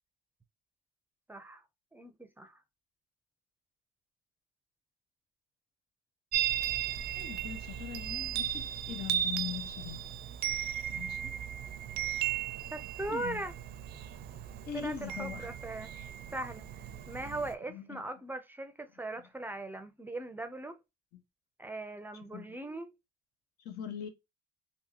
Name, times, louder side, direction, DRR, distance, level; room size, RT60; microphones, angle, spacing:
voice 1, 1.3-1.6 1.9-2.6 12.7-13.5 14.7-20.8 21.6-22.9, right 2 dB, 10° right, 0.5 m, -40 dB
Chime, 6.3-17.5, right 10 dB, 70° right, 0.5 m, -36 dB
voice 2, 7.1-10.0 10.9-11.3 13.1-13.4 14.7-15.5 17.7-18.0 22.3-22.4 23.6-24.1, left 9 dB, 70° left, 1.1 m, -41 dB
3.6 x 2.7 x 2.8 m
cardioid pair, 110°, 17 cm